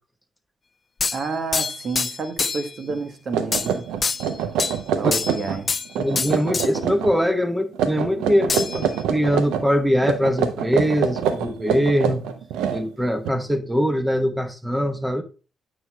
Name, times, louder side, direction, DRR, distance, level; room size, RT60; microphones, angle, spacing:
sound 1, 1.0-2.7 3.5-3.7 4.0-4.8 5.1-5.9 6.2-6.7 8.5-9.0, left 4 dB, 40° left, 0.3 m, -26 dB
voice 1, 1.1-3.9 5.0-5.7, right 4 dB, 55° right, 1.2 m, -29 dB
sound 2, 2.9-3.0 3.3-5.6 5.9-7.1 7.7-9.7 10.0-13.3, right 7 dB, 80° right, 0.6 m, -25 dB
voice 2, 6.0-12.5 12.7-15.2, equal, 10° right, 1.0 m, -22 dB
9.0 x 6.1 x 2.3 m
hypercardioid pair, 50°, 0 cm